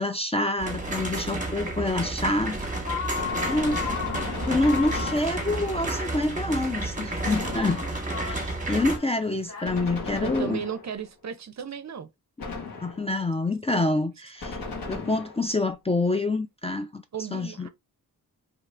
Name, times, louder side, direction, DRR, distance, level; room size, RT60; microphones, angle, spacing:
voice 1, 0.0-2.7 3.5-4.0 4.5-7.8 8.2-10.6 12.8-14.6 14.9-17.0 17.3-17.7, left 2 dB, 15° left, 0.3 m, -27 dB
sound 1, 0.6-9.0, right 2 dB, 20° right, 1.0 m, -31 dB
sound 2, 2.8-9.7, left 7 dB, 40° left, 1.0 m, -37 dB
Gunshot gunfire, 3.2-5.7 7.2-8.3 9.6-11.1 12.4-13.2 14.4-15.5, left 3 dB, 70° left, 1.2 m, -36 dB
voice 2, 10.2-12.1 17.1-17.7, right 7 dB, 50° right, 0.5 m, -35 dB
2.8 x 2.4 x 3.2 m
wide cardioid pair, 90°, 37 cm